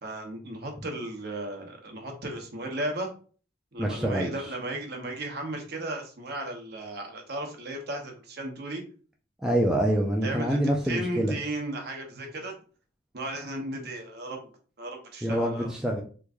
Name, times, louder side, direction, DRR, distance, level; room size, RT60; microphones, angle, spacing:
voice 1, 0.0-3.1 3.7-8.8 10.2-10.6 10.8-12.5 13.1-14.5 14.8-15.7, right 1 dB, 50° right, 2 dB, 0.9 m, -35 dB
voice 2, 3.8-4.3 9.4-11.3 15.2-16.0, right 1 dB, 5° right, -1 dB, 0.3 m, -26 dB
3.1 x 2.5 x 3.5 m, 0.40 s
head